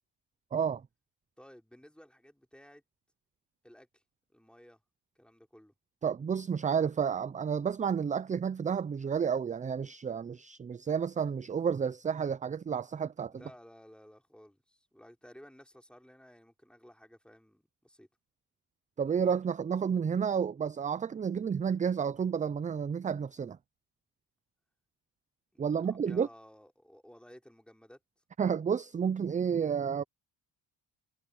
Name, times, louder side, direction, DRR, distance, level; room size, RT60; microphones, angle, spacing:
voice 1, 0.5-0.8 6.0-13.3 19.0-23.6 25.6-26.3 28.4-30.0, right 7 dB, 20° right, 0.3 m, -31 dB
voice 2, 1.4-2.8 3.6-4.0 4.3-4.8 5.1-5.7 13.3-18.1 25.5-28.0, equal, ahead, 4.6 m, -55 dB
cardioid pair, 105°, 41 cm